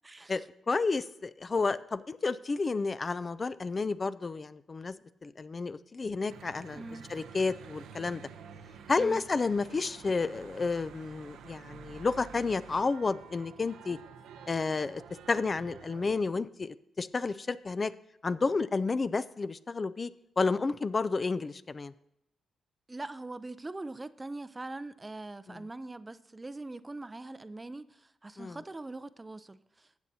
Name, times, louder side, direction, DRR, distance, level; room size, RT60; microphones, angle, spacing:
voice 1, 0.0-0.4 6.7-7.1 9.0-9.2 22.9-29.9, right 2 dB, 25° right, 0.4 m, -42 dB
voice 2, 0.7-5.0 5.2-6.8 7.1-8.2 8.9-14.0 14.5-15.0 15.3-17.9 18.2-20.1 20.4-21.9 25.5-25.6 28.4-28.6, left 4 dB, 40° left, 0.3 m, -31 dB
Church bell / Traffic noise roadway noise, 6.3-16.2, right 7 dB, 85° right, 0.6 m, -50 dB
15.0 x 7.8 x 2.8 m
supercardioid pair, 55°, 0 cm